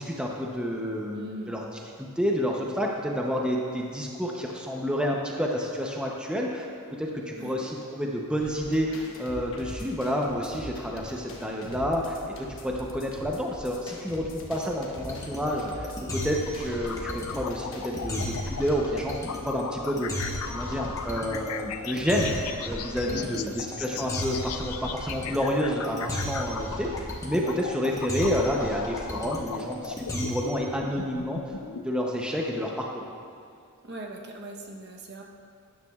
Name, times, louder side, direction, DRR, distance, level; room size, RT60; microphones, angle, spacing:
voice 1, 0.0-1.7 2.0-6.7 7.0-31.4 31.8-33.0, equal, 5° right, -1 dB, 0.7 m, -29 dB
voice 2, 1.1-1.6 7.4-7.5 23.0-23.7 33.8-35.2, right 1 dB, 50° right, 1 dB, 0.9 m, -40 dB
sound 1, 8.4-18.7, left 1 dB, 65° left, 1.2 m, -42 dB
sound 2, 15.0-30.6, left 1 dB, 15° left, 1.2 m, -35 dB
sound 3, 16.8-31.8, left 7 dB, 85° left, 0.4 m, -38 dB
12.5 x 10.0 x 2.4 m, 2.4 s
head